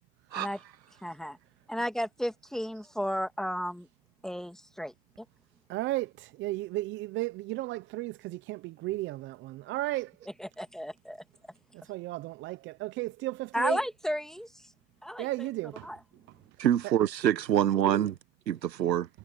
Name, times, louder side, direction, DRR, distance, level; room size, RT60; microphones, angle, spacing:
voice 1, 1.0-1.4 1.7-3.9 4.2-4.9 10.4-11.2 13.5-14.5 15.0-15.5 15.8-16.0, equal, ahead, 2.2 m, -33 dB
voice 2, 5.7-10.1 11.7-13.8 15.2-15.9 16.3-16.4, right 18 dB, 25° right, 0.7 m, -34 dB
voice 3, 16.6-18.1 18.5-19.1, right 11 dB, 85° right, 1.5 m, -25 dB
hypercardioid pair, 125°, 49 cm